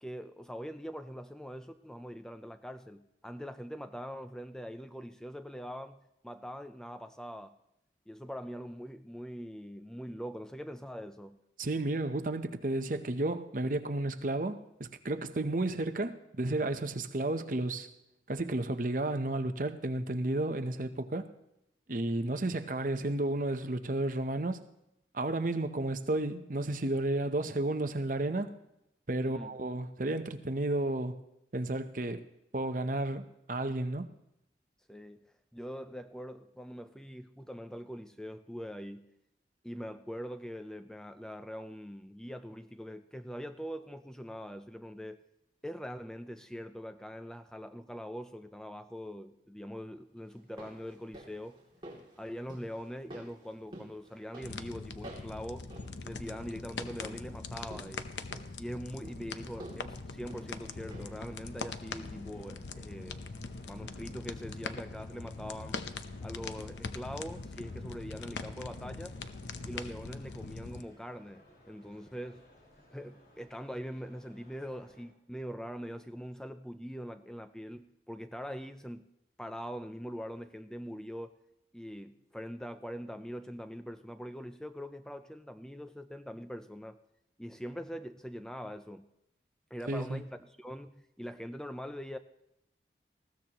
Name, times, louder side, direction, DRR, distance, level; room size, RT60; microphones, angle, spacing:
voice 1, 0.0-7.5 8.1-11.4 29.2-29.6 34.9-39.1 39.6-45.2 45.6-51.6 52.2-55.7 56.0-58.1 58.6-63.3 63.6-65.8 66.2-69.2 69.6-72.4 72.9-79.1 79.4-81.4 81.7-87.0 87.4-89.1 89.7-92.2, equal, 5° left, 0.4 m, -43 dB
voice 2, 11.6-17.9 18.3-21.3 21.9-24.6 25.1-28.5 29.1-31.2 31.5-32.2 32.5-34.1 89.9-90.2, right 2 dB, 50° right, 0.8 m, -32 dB
sound 1, 50.3-61.3 61.6-61.7, right 1 dB, 30° right, 2.6 m, -52 dB
sound 2, 54.4-70.8, left 4 dB, 90° left, 0.8 m, -42 dB
sound 3, 60.3-75.1, left 1 dB, 60° left, 4.6 m, -61 dB
20.0 x 15.5 x 3.0 m
head